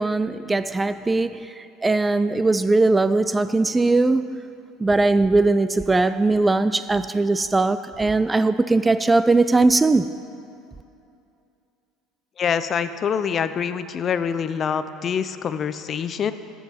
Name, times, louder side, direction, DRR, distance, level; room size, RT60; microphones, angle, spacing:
voice 1, 0.0-4.4 4.8-10.1, right 3 dB, 15° right, 0.3 m, -20 dB
voice 2, 12.4-16.3, left 7 dB, 40° left, 0.5 m, -25 dB
14.0 x 5.5 x 5.9 m
supercardioid pair, 90°, 0 cm